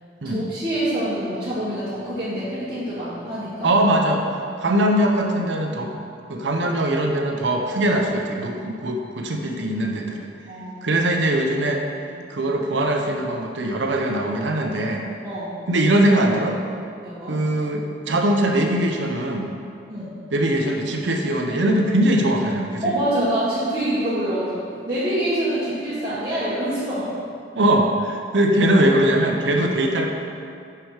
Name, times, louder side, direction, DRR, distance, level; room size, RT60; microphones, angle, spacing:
voice 1, 0.2-3.7 10.5-10.8 12.1-12.3 15.2-15.6 17.0-17.3 19.9-20.1 22.8-27.1, right 1 dB, 25° right, -13 dB, 1.6 m, -26 dB
voice 2, 3.6-4.2 4.6-5.9 6.3-10.3 10.8-11.8 12.3-15.1 15.7-16.6 17.3-19.5 20.3-22.9 27.6-30.1, right 1 dB, 85° right, 2 dB, 0.7 m, -21 dB
6.4 x 5.9 x 4.9 m, 2.4 s
head